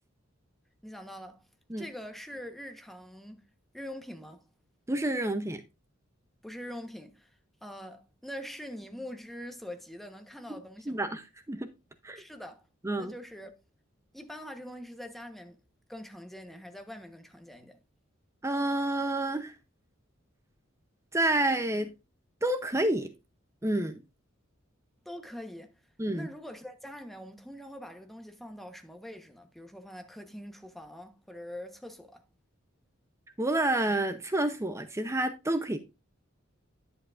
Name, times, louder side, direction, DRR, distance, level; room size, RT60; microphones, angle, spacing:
voice 1, 0.8-1.4 1.8-3.4 3.7-4.4 6.4-11.0 12.2-12.6 13.0-13.5 14.1-15.6 15.9-17.8 25.0-25.8 26.1-32.2, equal, ahead, 1.1 m, -44 dB
voice 2, 4.9-5.6 10.9-11.2 11.5-11.7 12.0-12.2 12.8-13.1 18.4-19.5 21.1-21.9 22.4-23.1 23.6-23.9 26.0-26.3 33.4-35.8, right 1 dB, 15° right, 0.7 m, -29 dB
11.0 x 7.4 x 2.5 m
head